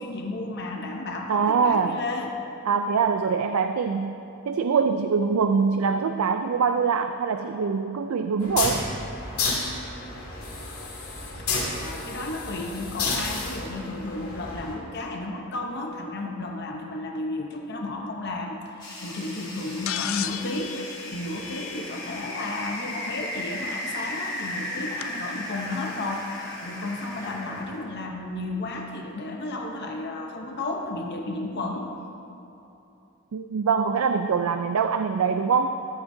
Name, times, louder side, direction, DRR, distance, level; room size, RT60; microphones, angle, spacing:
voice 1, 0.0-2.4 11.8-20.8 21.1-26.3 26.6-31.9, left 2 dB, 50° left, 1 dB, 0.8 m, -33 dB
voice 2, 1.3-2.0 2.7-4.2 4.5-8.8 33.3-35.8, right 5 dB, 85° right, 8 dB, 0.4 m, -24 dB
sound 1, 8.4-14.7, left 3 dB, 85° left, 2.4 m, -31 dB
sound 2, 18.8-27.8, left 1 dB, 20° left, 2.0 m, -36 dB
sound 3, 19.9-22.2 23.7-23.8 25.0-25.1, left 11 dB, 70° left, 0.4 m, -34 dB
14.5 x 12.0 x 2.7 m, 2.8 s
head